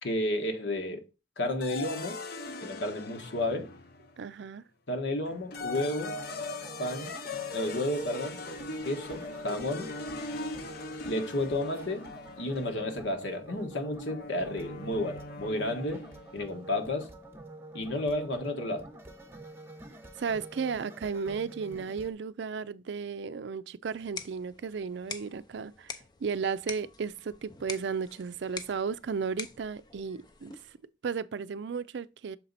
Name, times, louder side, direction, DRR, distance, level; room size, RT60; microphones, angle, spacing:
voice 1, 0.0-1.0 1.4-2.2 2.6-3.7 4.9-6.2 6.8-7.1 7.5-8.4 8.8-9.9 11.0-12.1 12.4-16.0 16.3-17.1 17.7-18.9, left 1 dB, 80° left, 1.4 m, -32 dB
sound 1, 1.6-4.2 5.3-16.4, left 2 dB, 55° left, 0.8 m, -40 dB
voice 2, 4.2-4.6 20.2-25.9 26.2-30.6 31.0-32.4, right 5 dB, 70° right, 0.4 m, -34 dB
sound 2, 5.6-22.1, right 2 dB, 10° right, 0.8 m, -48 dB
sound 3, 23.8-30.8, left 4 dB, 25° left, 0.6 m, -45 dB
6.7 x 4.3 x 4.0 m
head